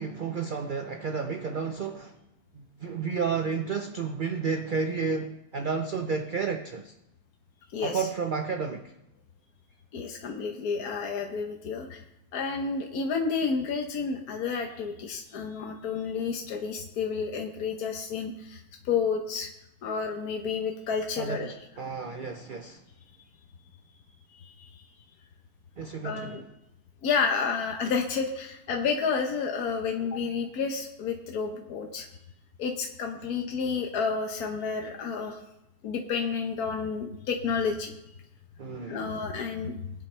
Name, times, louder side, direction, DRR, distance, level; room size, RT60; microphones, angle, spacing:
voice 1, 0.0-2.2 2.5-7.0 7.8-8.9 21.2-22.8 25.8-26.5 38.6-39.1, right 5 dB, 45° right, 5 dB, 0.7 m, -32 dB
voice 2, 7.7-8.1 9.9-12.0 12.3-19.5 19.8-21.5 24.4-24.8 26.0-26.4 27.0-32.1 32.6-35.4 35.8-37.9 38.9-39.8, left 5 dB, 80° left, 3 dB, 1.5 m, -30 dB
21.0 x 8.9 x 3.3 m, 0.86 s
omnidirectional pair, 1.6 m